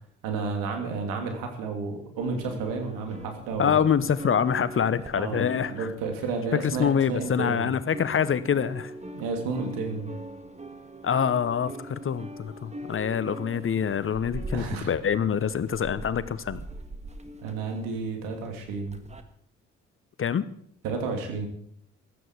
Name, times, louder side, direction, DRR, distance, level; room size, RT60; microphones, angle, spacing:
voice 1, 0.2-3.8 5.2-7.7 9.1-10.1 14.5-14.9 17.4-19.0 20.8-21.5, right 4 dB, 70° right, 4 dB, 3.1 m, -31 dB
sound 1, 2.2-7.5 7.8-19.2, right 1 dB, 20° right, 1.8 m, -42 dB
voice 2, 3.6-5.9 6.6-8.9 11.0-16.6 20.2-20.4, left 7 dB, 35° left, 15 dB, 1.0 m, -25 dB
15.5 x 13.5 x 4.7 m, 0.65 s
figure-of-eight pair, 45°, 35 cm